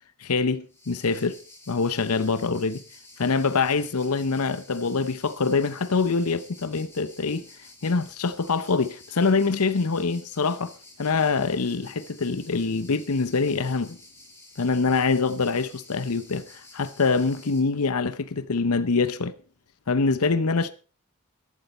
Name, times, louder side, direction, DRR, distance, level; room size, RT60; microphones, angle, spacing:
voice 1, 0.2-1.4 1.7-2.8 3.2-7.4 7.8-10.7 11.0-14.0 14.6-19.3 19.9-20.7, left 4 dB, 80° left, 0.8 m, -24 dB
sound 1, 0.7-17.6, left 2 dB, 10° left, 5.5 m, -51 dB
13.5 x 12.5 x 4.3 m
head